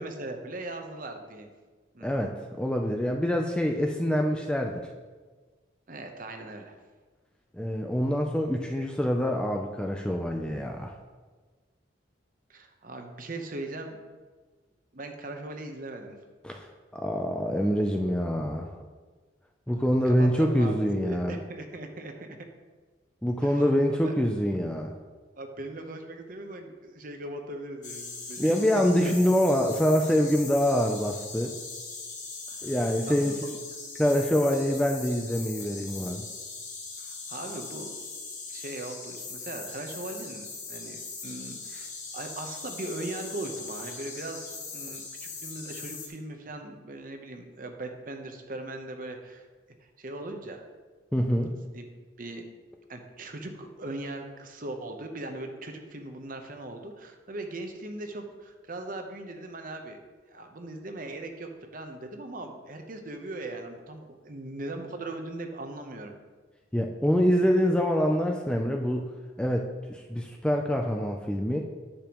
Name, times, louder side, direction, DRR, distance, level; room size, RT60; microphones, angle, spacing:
voice 1, 0.0-1.5 1.9-2.1 5.9-6.8 12.5-14.0 14.9-16.2 20.0-22.4 23.4-23.6 24.0-24.1 25.4-28.6 29.0-29.1 32.5-33.3 37.0-38.0 38.5-49.5 49.8-50.6 51.3-51.8 52.2-52.5 52.9-66.1, right 2 dB, 45° right, 5 dB, 0.8 m, -39 dB
voice 2, 2.0-4.9 7.5-10.9 16.4-16.7 16.9-18.8 19.7-21.4 23.2-24.9 28.4-31.5 32.6-33.6 34.0-36.3 51.1-51.5 66.7-69.1 69.4-71.6, equal, 5° left, 2 dB, 0.4 m, -25 dB
sound 1, 27.8-46.1, left 4 dB, 40° left, 1.3 m, -40 dB
10.5 x 6.8 x 3.0 m, 1.4 s
head